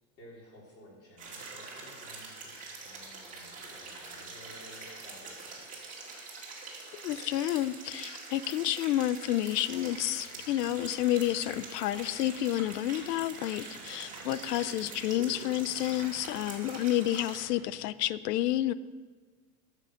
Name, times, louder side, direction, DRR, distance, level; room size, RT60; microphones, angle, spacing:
voice 1, 0.2-5.6, left 1 dB, 30° left, -4 dB, 3.9 m, -54 dB
sound 1, 1.2-17.4, right 3 dB, 15° right, 2.0 m, -44 dB
voice 2, 6.9-18.7, left 13 dB, 85° left, 17 dB, 0.6 m, -30 dB
sound 2, 9.6-17.9, right 5 dB, 45° right, 1.2 m, -57 dB
12.0 x 6.7 x 6.4 m, 1.5 s
supercardioid pair, 150°, 47 cm